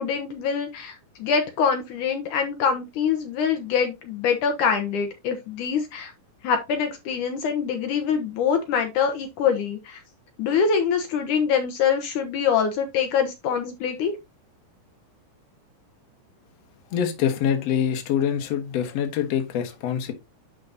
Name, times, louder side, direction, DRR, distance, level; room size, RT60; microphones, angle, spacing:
voice 1, 0.0-6.1 6.4-10.0 10.4-14.1, left 6 dB, 75° left, 2.5 m, -24 dB
voice 2, 16.9-20.1, left 9 dB, 60° left, 2.3 m, -25 dB
10.5 x 4.8 x 2.7 m
omnidirectional pair, 3.8 m